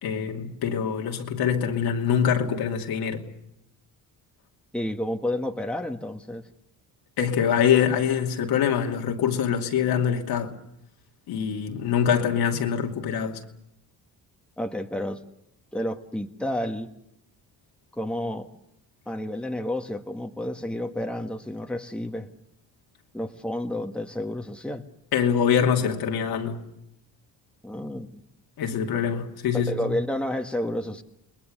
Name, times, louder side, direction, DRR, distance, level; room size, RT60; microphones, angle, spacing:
voice 1, 0.0-3.2 7.2-10.5 11.3-13.4 25.1-26.6 28.6-30.0, left 8 dB, 80° left, 2.8 m, -24 dB
voice 2, 4.7-6.5 14.6-15.2 15.7-16.9 17.9-18.5 19.1-22.3 23.1-24.8 27.6-28.1 29.7-31.0, left 1 dB, 5° left, 1.7 m, -30 dB
29.5 x 21.0 x 6.7 m
cardioid pair, 95°, 38 cm